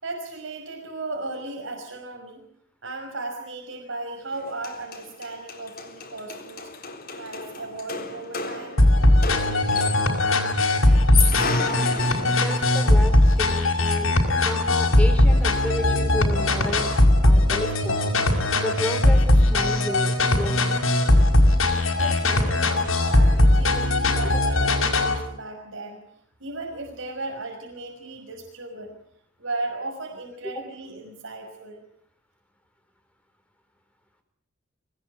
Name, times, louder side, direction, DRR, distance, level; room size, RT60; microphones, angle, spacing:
voice 1, 0.0-2.4 2.8-6.7 7.2-8.8 22.0-26.0 26.4-29.0 29.4-31.8, right 2 dB, 70° right, 2 dB, 5.8 m, -36 dB
sound 1, 4.3-4.4 4.6-10.3 10.9-12.7, left 5 dB, 50° left, 3.9 m, -32 dB
sound 2, 8.8-25.2, left 1 dB, 80° left, 5.7 m, -19 dB
voice 2, 11.5-14.1 14.4-16.9 17.2-18.0 18.6-20.8 24.2-24.4 30.4-30.6, left 1 dB, 5° left, 6 dB, 4.6 m, -32 dB
25.0 x 19.5 x 9.7 m, 0.67 s
head